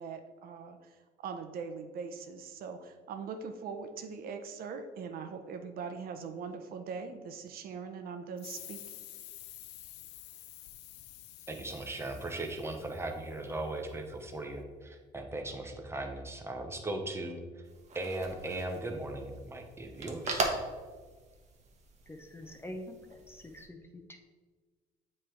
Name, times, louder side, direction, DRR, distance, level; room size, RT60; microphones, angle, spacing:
voice 1, 0.0-8.8, right 5 dB, 60° right, 6 dB, 0.6 m, -41 dB
sound 1, 8.4-13.7, left 14 dB, 85° left, 0.4 m, -50 dB
voice 2, 11.5-17.4 17.9-20.5, right 2 dB, 15° right, 4 dB, 0.8 m, -38 dB
sound 2, 17.6-23.7, right 3 dB, 45° right, 1.0 m, -40 dB
voice 3, 22.1-24.2, left 1 dB, 15° left, 5 dB, 0.6 m, -46 dB
7.4 x 3.2 x 4.4 m, 1.4 s
cardioid pair, 110°, 17 cm